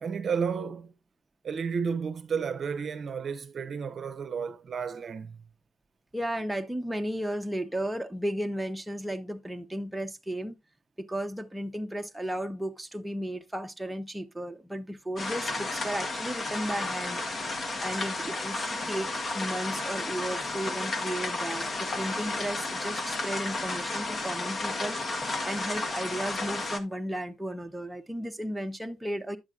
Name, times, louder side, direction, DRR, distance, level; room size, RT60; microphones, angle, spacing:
voice 1, 0.0-0.9 1.4-5.4, right 6 dB, 50° right, 0.7 m, -32 dB
voice 2, 6.1-10.6 11.0-29.4, right 1 dB, 5° right, 0.8 m, -34 dB
sound 1, 15.2-26.8, left 2 dB, 40° left, 1.2 m, -32 dB
10.0 x 7.2 x 2.3 m
cardioid pair, 90°, 0 cm